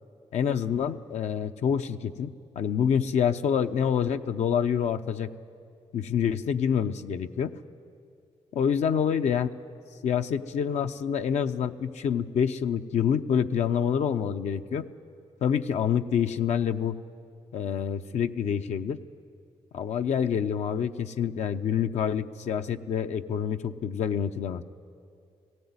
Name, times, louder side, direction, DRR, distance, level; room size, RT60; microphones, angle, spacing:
voice 1, 0.3-2.3 2.6-5.3 5.9-7.5 8.5-9.5 10.0-14.9 15.4-17.0 17.5-19.0 19.7-24.6, left 8 dB, 70° left, 7 dB, 0.7 m, -27 dB
18.5 x 15.5 x 9.6 m, 2.4 s
cardioid pair, 75°, 12 cm